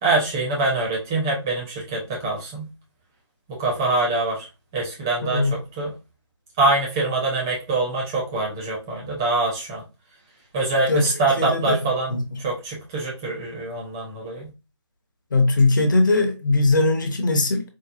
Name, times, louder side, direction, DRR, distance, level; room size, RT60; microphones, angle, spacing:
voice 1, 0.0-2.7 3.5-4.5 4.7-5.9 6.6-9.8 10.5-14.5, right 2 dB, 5° right, 0.4 m, -24 dB
voice 2, 5.2-5.5 10.9-11.1 11.4-11.8 12.1-12.2 15.3-17.6, left 2 dB, 40° left, 0.7 m, -20 dB
4.6 x 2.0 x 2.5 m
figure-of-eight pair, 155°, 16 cm